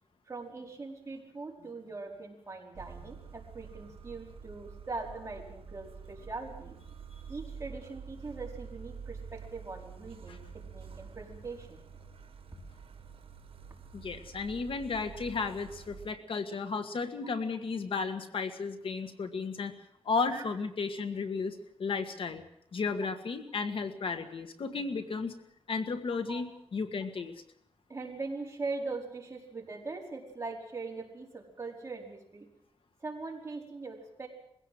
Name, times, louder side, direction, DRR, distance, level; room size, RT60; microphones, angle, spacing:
voice 1, 0.3-6.8 7.3-11.8 20.3-20.4 26.3-26.4 27.9-32.5 33.0-34.3, right 3 dB, 30° right, -1 dB, 4.9 m, -41 dB
sound 1, 2.7-16.1, right 6 dB, 80° right, 1.6 m, -48 dB
voice 2, 13.9-19.7 20.1-22.4 22.7-25.3 25.7-27.3, left 4 dB, 70° left, 8 dB, 1.7 m, -34 dB
22.0 x 16.0 x 7.8 m, 0.76 s
wide cardioid pair, 110°, 10 cm